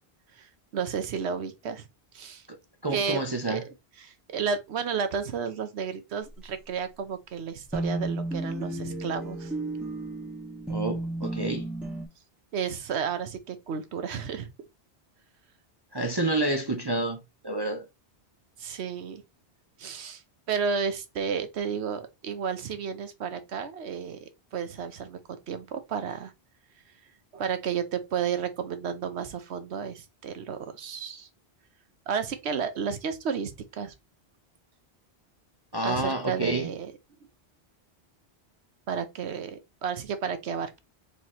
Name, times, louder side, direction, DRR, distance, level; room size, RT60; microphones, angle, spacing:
voice 1, 0.4-1.8 2.1-2.4 2.9-3.7 4.0-9.5 12.5-14.5 18.6-19.2 19.8-20.2 20.5-26.3 27.3-31.3 32.1-33.9 35.8-36.9 38.9-40.8, right 6 dB, 80° right, 1.1 m, -32 dB
voice 2, 2.8-3.6 10.7-11.7 15.9-17.9 35.7-36.7, right 2 dB, 30° right, 0.5 m, -29 dB
sound 1, 7.7-12.1, right 2 dB, ahead, 1.5 m, -33 dB
4.2 x 3.6 x 2.9 m
omnidirectional pair, 1.1 m